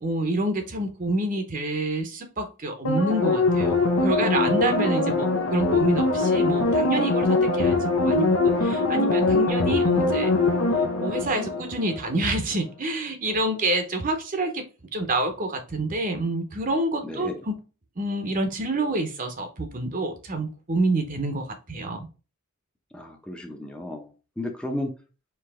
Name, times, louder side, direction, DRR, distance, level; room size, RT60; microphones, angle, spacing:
voice 1, 0.0-10.3 11.0-14.7 14.9-17.6 18.0-22.1, right 2 dB, 40° right, 6 dB, 0.8 m, -27 dB
sound 1, 2.8-12.2 12.6-12.7, left 3 dB, 70° left, 0.9 m, -22 dB
voice 2, 22.9-24.1 24.4-24.9, left 1 dB, 5° left, 2 dB, 0.6 m, -33 dB
4.7 x 2.9 x 3.5 m, 0.32 s
head